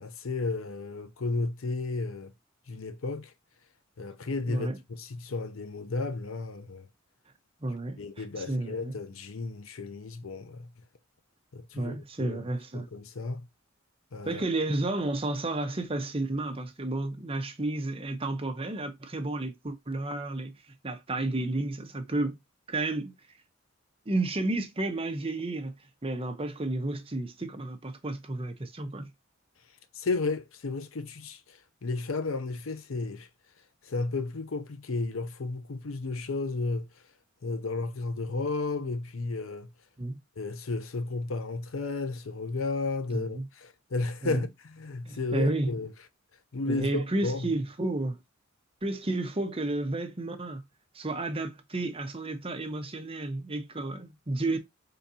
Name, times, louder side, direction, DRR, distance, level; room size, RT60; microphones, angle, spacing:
voice 1, 0.0-2.3 2.7-3.3 4.0-6.9 8.0-10.7 11.5-12.4 12.7-13.4 14.1-14.4 29.9-31.4 31.8-33.3 33.9-36.9 37.4-39.7 40.4-45.9 46.5-47.5, left 3 dB, 80° left, 0.7 m, -33 dB
voice 2, 7.6-9.0 11.7-12.9 14.2-20.5 20.8-22.4 22.7-23.1 24.1-25.7 26.0-29.1 40.0-40.2 43.1-43.5 44.2-44.5 45.0-45.7 46.6-48.2 48.8-50.6 50.9-54.6, right 2 dB, 30° right, 0.8 m, -31 dB
4.9 x 3.8 x 2.7 m
head